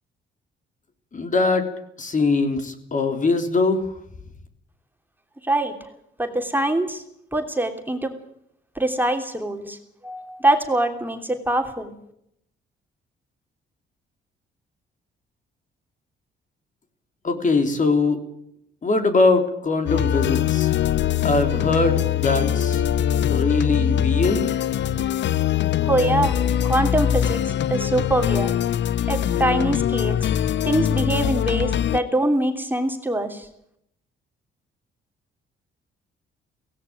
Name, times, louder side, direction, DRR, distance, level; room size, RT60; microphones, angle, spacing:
voice 1, 1.1-1.7 2.0-3.9 17.2-18.2 18.8-20.7 21.2-22.8 23.3-24.5, left 3 dB, 40° left, 6 dB, 3.6 m, -21 dB
voice 2, 5.4-5.9 6.2-7.0 7.3-8.1 8.7-9.8 10.0-11.9 25.8-26.4 26.6-27.4 27.7-28.5 29.1-30.3 30.6-33.5, right 1 dB, 10° right, 4 dB, 3.1 m, -23 dB
sound 1, 19.9-32.0, left 10 dB, 65° left, 0.8 m, -22 dB
17.5 x 16.5 x 9.4 m, 0.75 s
cardioid pair, 90°, 20 cm